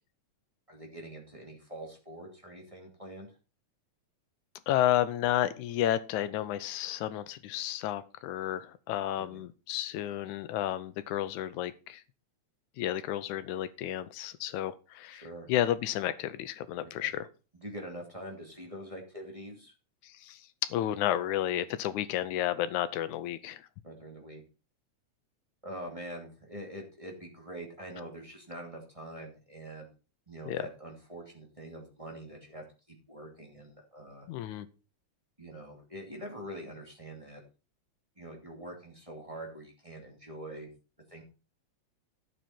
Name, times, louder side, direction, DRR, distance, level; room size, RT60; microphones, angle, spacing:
voice 1, 0.7-3.3 9.2-9.4 15.1-15.5 17.0-17.1 17.5-19.7 23.8-24.4 25.6-29.9 30.3-32.6 33.1-34.3 35.4-37.4 38.2-40.7 41.1-41.2, right 1 dB, 10° right, 0 dB, 2.4 m, -44 dB
voice 2, 4.7-12.0 12.8-15.2 15.5-17.3 20.0-20.4 20.7-23.6 30.5-30.6 34.3-34.7, left 12 dB, 90° left, 15 dB, 2.2 m, -31 dB
12.5 x 7.7 x 4.4 m, 0.33 s
omnidirectional pair, 3.3 m